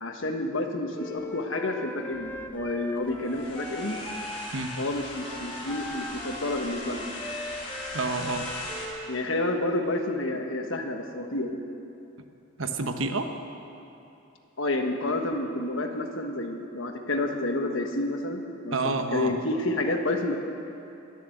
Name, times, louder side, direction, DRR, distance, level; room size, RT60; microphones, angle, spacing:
voice 1, 0.0-4.0 4.8-7.1 9.1-11.6 14.6-18.8 19.1-20.4, left 2 dB, 70° left, 4 dB, 1.5 m, -29 dB
Wind instrument woodwind instrument, 0.9-9.3, left 2 dB, 10° left, 0.7 m, -40 dB
sound 1, 2.1-8.9, left 1 dB, 30° left, 3.1 m, -39 dB
voice 2, 7.9-8.5 12.6-13.3 18.7-19.4, right 3 dB, 75° right, 6 dB, 1.1 m, -28 dB
22.0 x 7.7 x 7.9 m, 2.9 s
head